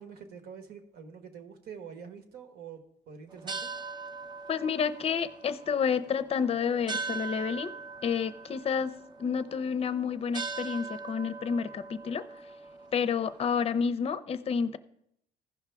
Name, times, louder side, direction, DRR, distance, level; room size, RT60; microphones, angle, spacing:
voice 1, 0.0-2.8 3.1-3.7, right 6 dB, 65° right, 6 dB, 1.4 m, -46 dB
sound 1, 3.3-13.8, right 4 dB, 25° right, 0.5 m, -41 dB
voice 2, 4.5-7.7 8.0-8.9 9.2-12.2 12.9-14.8, left 6 dB, 35° left, 14 dB, 0.6 m, -29 dB
15.5 x 5.7 x 3.5 m, 0.76 s
cardioid pair, 110°, 17 cm